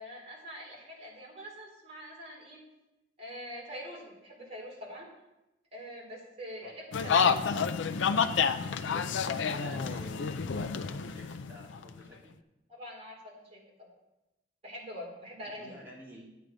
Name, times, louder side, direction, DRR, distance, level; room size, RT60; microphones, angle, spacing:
voice 1, 0.0-2.6 3.2-5.1 5.7-7.3 12.7-13.9 14.6-15.7, equal, 35° right, -4 dB, 3.6 m, -44 dB
voice 2, 6.6-7.2 9.4-12.4 15.6-16.2, equal, 10° right, -6 dB, 2.9 m, -50 dB
sound 1, 6.9-12.0, left 6 dB, 85° left, 0.5 m, -29 dB
9.4 x 8.4 x 5.1 m, 0.96 s
head